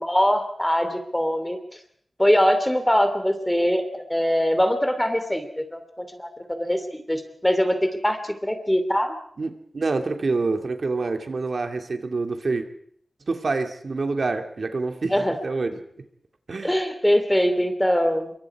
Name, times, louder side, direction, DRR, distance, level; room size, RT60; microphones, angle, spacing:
voice 1, 0.0-1.6 2.2-7.8 8.0-9.1 15.1-15.3 16.6-18.3, equal, 10° left, 8 dB, 2.9 m, -22 dB
voice 2, 9.4-12.6 13.3-15.8 16.5-16.7, right 3 dB, 65° right, 6 dB, 2.5 m, -27 dB
26.0 x 23.5 x 4.8 m, 0.63 s
wide cardioid pair, 70°, 0 cm